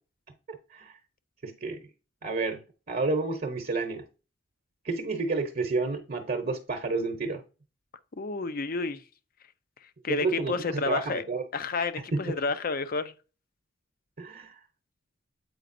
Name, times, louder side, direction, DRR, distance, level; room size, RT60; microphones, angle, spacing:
voice 1, 0.5-0.9 1.4-1.8 2.2-4.1 4.8-7.4 10.1-11.4 12.1-12.2 14.2-14.6, right 3 dB, 50° right, 0.9 m, -30 dB
voice 2, 8.2-9.0 10.0-11.2 11.5-13.1, left 4 dB, 50° left, 0.6 m, -30 dB
8.0 x 5.0 x 2.6 m
head